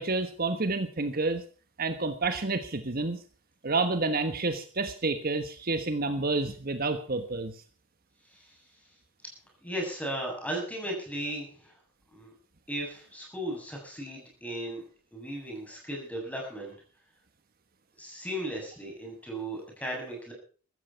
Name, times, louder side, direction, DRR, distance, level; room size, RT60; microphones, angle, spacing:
voice 1, 0.0-1.4 1.8-3.2 3.6-7.6, right 3 dB, 45° right, 8 dB, 1.3 m, -29 dB
voice 2, 9.6-11.7 12.1-12.3 12.7-14.8 15.1-16.7 18.0-20.3, right 1 dB, 5° left, 0 dB, 7.4 m, -36 dB
16.0 x 13.5 x 5.8 m, 0.41 s
head